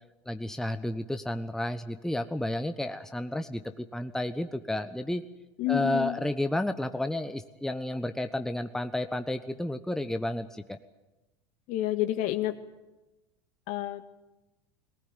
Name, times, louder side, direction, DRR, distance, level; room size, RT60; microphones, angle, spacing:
voice 1, 0.3-5.2 5.7-10.8, left 1 dB, 5° left, 8 dB, 1.1 m, -31 dB
voice 2, 5.6-6.1 11.7-12.5 13.7-14.0, left 15 dB, 55° left, 8 dB, 2.0 m, -29 dB
22.0 x 19.0 x 9.1 m, 1.0 s
hypercardioid pair, 80°, 15 cm